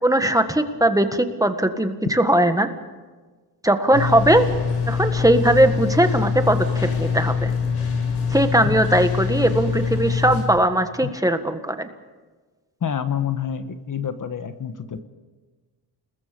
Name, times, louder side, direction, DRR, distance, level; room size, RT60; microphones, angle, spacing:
voice 1, 0.0-2.7 3.6-4.5 4.9-7.5 8.3-11.9, right 1 dB, 10° right, 7 dB, 1.6 m, -19 dB
sound 1, 3.9-10.4, left 5 dB, 90° left, 6.6 m, -24 dB
voice 2, 12.8-15.0, left 8 dB, 50° left, 9 dB, 1.4 m, -27 dB
29.5 x 21.0 x 5.3 m, 1.4 s
cardioid pair, 100°, 40 cm